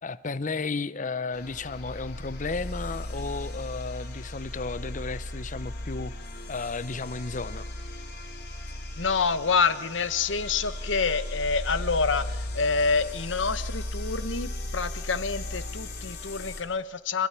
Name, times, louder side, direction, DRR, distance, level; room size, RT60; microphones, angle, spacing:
voice 1, 0.0-6.1 6.5-7.7, left 4 dB, 40° left, 16 dB, 0.7 m, -33 dB
sound 1, 1.3-16.6, left 1 dB, 60° left, 4.3 m, -36 dB
voice 2, 9.0-17.3, left 5 dB, 90° left, 13 dB, 1.2 m, -27 dB
27.0 x 15.0 x 10.0 m, 1.2 s
head